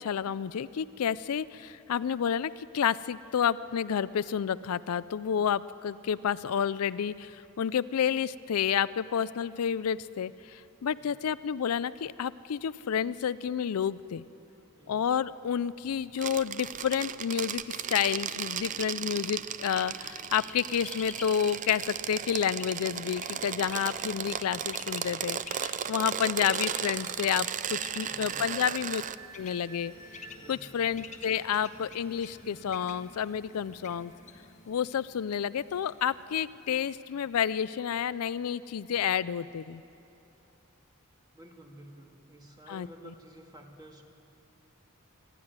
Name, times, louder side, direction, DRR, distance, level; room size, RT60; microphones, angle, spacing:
voice 1, 0.0-14.2 14.9-29.0 29.4-30.2 30.5-34.1 34.7-39.8 42.7-42.9, left 8 dB, 75° left, 16 dB, 0.4 m, -30 dB
voice 2, 10.9-11.3 14.8-15.0 27.9-28.6 30.4-30.8 41.3-44.0, equal, 20° right, 2 dB, 2.0 m, -52 dB
sound 1, 16.1-29.1, right 8 dB, 35° right, 0.4 m, -35 dB
Bird, 19.6-37.4, left 5 dB, 35° left, 1.3 m, -50 dB
sound 2, 26.2-34.9, right 2 dB, 80° right, 4.0 m, -55 dB
25.5 x 12.5 x 9.5 m, 2.8 s
head